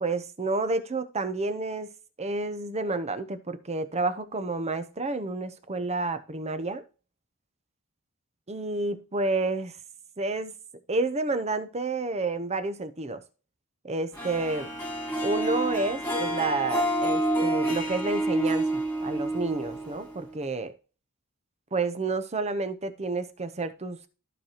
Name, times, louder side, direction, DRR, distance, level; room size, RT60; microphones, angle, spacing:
voice 1, 0.0-1.9 2.2-6.8 8.5-9.8 10.2-10.5 10.9-13.2 13.8-14.7 15.2-20.7 21.7-24.1, right 3 dB, 30° right, 0.8 m, -30 dB
Harp, 14.2-20.4, right 1 dB, 5° left, 2.4 m, -28 dB
14.0 x 5.0 x 2.9 m
head